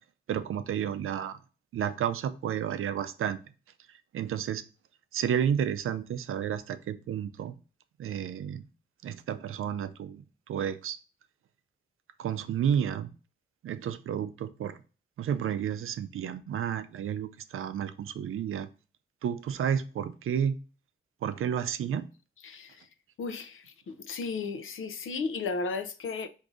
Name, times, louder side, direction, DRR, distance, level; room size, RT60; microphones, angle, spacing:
voice 1, 0.3-1.4 1.7-3.4 4.1-4.6 5.1-7.5 8.0-8.6 9.0-11.0 12.2-13.1 13.6-14.8 15.2-18.7 19.2-20.6 21.2-22.1, right 8 dB, 85° right, 0.4 m, -31 dB
voice 2, 22.4-22.8 23.2-26.3, left 4 dB, 75° left, 0.6 m, -34 dB
4.8 x 2.6 x 3.8 m
wide cardioid pair, 120°, 21 cm